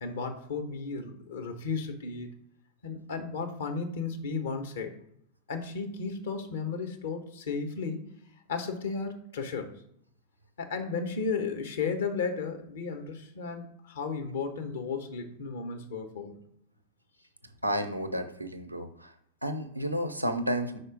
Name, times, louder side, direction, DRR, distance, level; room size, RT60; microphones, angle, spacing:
voice 1, 0.0-2.4 2.8-4.9 5.5-8.0 8.5-9.7 10.6-16.3, left 5 dB, 60° left, 5 dB, 1.0 m, -34 dB
voice 2, 17.6-19.1 19.4-20.8, equal, 90° right, 7 dB, 0.6 m, -31 dB
4.9 x 4.2 x 5.1 m, 0.71 s
figure-of-eight pair, 90°, 0 cm